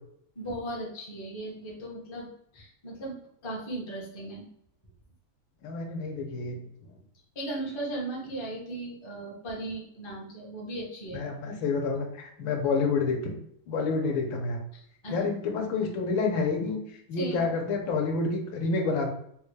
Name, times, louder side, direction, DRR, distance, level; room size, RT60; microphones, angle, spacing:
voice 1, 0.3-2.3 2.5-4.5 7.3-11.2 15.0-15.2 17.2-17.5, right 1 dB, 50° left, -3 dB, 0.3 m, -37 dB
voice 2, 5.6-6.6 11.1-13.3 13.7-14.6 15.1-19.1, left 4 dB, 80° left, 2 dB, 1.5 m, -28 dB
3.8 x 2.2 x 3.2 m, 0.70 s
omnidirectional pair, 2.1 m